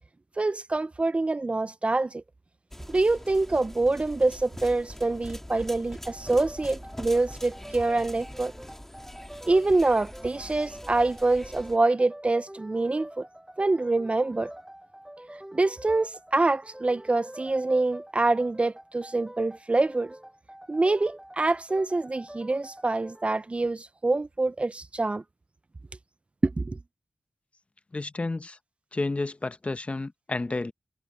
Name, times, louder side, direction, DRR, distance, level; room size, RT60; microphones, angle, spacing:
voice 1, 0.4-2.2 2.9-8.5 9.5-13.3 13.6-14.5 15.5-20.1 20.7-25.2 26.4-26.8, right 2 dB, 30° right, 0.5 m, -25 dB
sound 1, 2.7-11.8, left 1 dB, 10° left, 3.1 m, -43 dB
sound 2, 6.0-23.5, right 1 dB, 10° right, 7.5 m, -46 dB
voice 2, 27.9-28.6 28.9-30.7, left 2 dB, 30° left, 1.0 m, -31 dB
cardioid pair, 65°, 4 cm